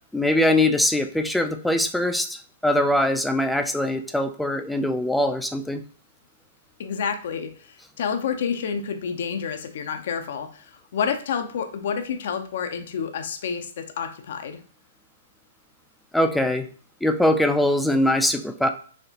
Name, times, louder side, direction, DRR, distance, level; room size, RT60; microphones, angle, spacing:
voice 1, 0.1-5.8 16.1-16.7 17.0-18.7, left 1 dB, 5° left, 7 dB, 0.4 m, -22 dB
voice 2, 6.8-14.6, left 6 dB, 65° left, 7 dB, 0.5 m, -29 dB
4.2 x 2.8 x 2.8 m, 0.43 s
hypercardioid pair, 130°, 0 cm